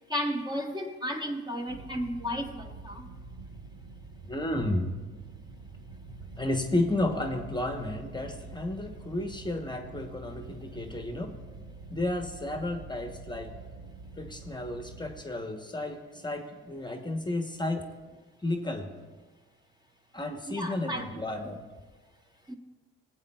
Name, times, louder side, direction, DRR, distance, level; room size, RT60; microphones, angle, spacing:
voice 1, 0.1-3.0 20.5-21.1 22.5-22.6, equal, 15° right, 3 dB, 0.8 m, -33 dB
sound 1, 1.7-15.2, right 3 dB, 75° right, 1.1 m, -46 dB
voice 2, 4.2-5.0 6.4-11.4 11.9-13.6 14.2-17.8 18.4-18.9 20.1-21.6, left 1 dB, 15° left, 5 dB, 0.8 m, -32 dB
19.0 x 8.0 x 2.3 m, 1.3 s
cardioid pair, 90°, 30 cm